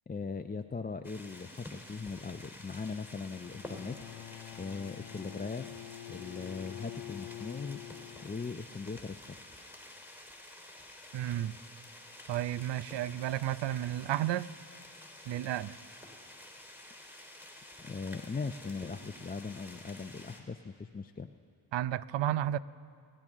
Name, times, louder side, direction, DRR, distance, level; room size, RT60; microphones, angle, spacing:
voice 1, 0.1-3.9 4.6-7.8 8.2-9.4 17.8-21.3, left 4 dB, 20° left, 6 dB, 0.6 m, -39 dB
sound 1, 1.0-20.4, left 1 dB, 5° right, 3.2 m, -50 dB
Bowed string instrument, 3.4-8.7, left 15 dB, 65° left, 0.6 m, -47 dB
voice 2, 11.1-11.5 12.3-14.5 15.3-15.8 21.7-22.6, right 12 dB, 65° right, 17 dB, 0.6 m, -32 dB
29.5 x 10.5 x 3.7 m, 2.4 s
supercardioid pair, 45°, 46 cm